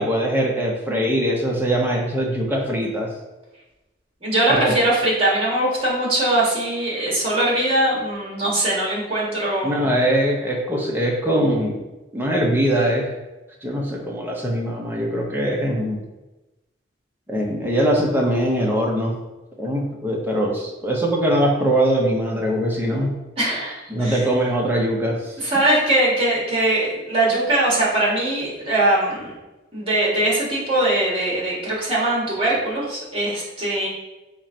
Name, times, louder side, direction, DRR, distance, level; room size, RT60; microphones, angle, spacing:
voice 1, 0.0-3.1 4.5-4.7 9.6-11.8 12.1-13.1 13.6-16.0 17.3-19.1 19.6-23.1 23.9-25.4, equal, 10° right, -2 dB, 0.7 m, -22 dB
voice 2, 4.2-9.9 23.4-24.2 25.4-29.3 29.7-33.9, right 1 dB, 30° right, -5 dB, 1.4 m, -21 dB
4.4 x 2.5 x 4.3 m, 1.1 s
head